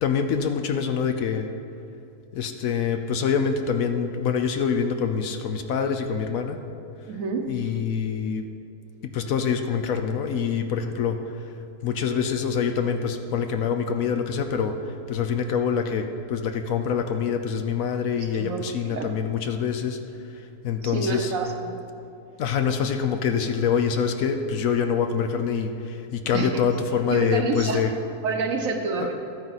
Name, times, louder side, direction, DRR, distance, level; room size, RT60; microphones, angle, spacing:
voice 1, 0.0-1.5 2.3-6.6 7.5-8.5 9.1-11.2 11.8-20.0 20.3-21.3 22.4-27.9 29.0-29.1, left 6 dB, 70° left, 6 dB, 1.0 m, -25 dB
voice 2, 7.1-7.5 18.1-19.1 20.9-21.7 26.3-26.6 27.1-27.9 28.2-29.1, right 4 dB, 65° right, 4 dB, 1.2 m, -28 dB
13.0 x 8.6 x 4.1 m, 2.8 s
omnidirectional pair, 1.6 m